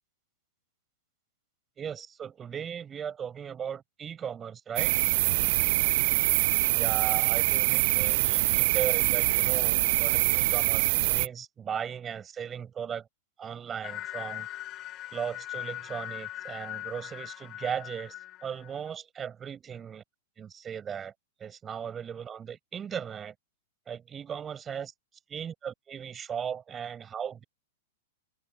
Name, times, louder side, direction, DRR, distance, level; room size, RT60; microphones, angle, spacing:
voice 1, 1.8-4.9 6.7-13.1 13.4-14.5 15.1-18.1 18.4-20.0 20.4-21.1 21.4-23.3 23.9-24.9 25.3-27.4, right 8 dB, 25° right, 5.5 m, -37 dB
sound 1, 4.8-11.3, right 19 dB, 55° right, 0.6 m, -24 dB
sound 2, 13.8-18.9, left 15 dB, 35° left, 4.4 m, -40 dB
open air
hypercardioid pair, 105°, 0 cm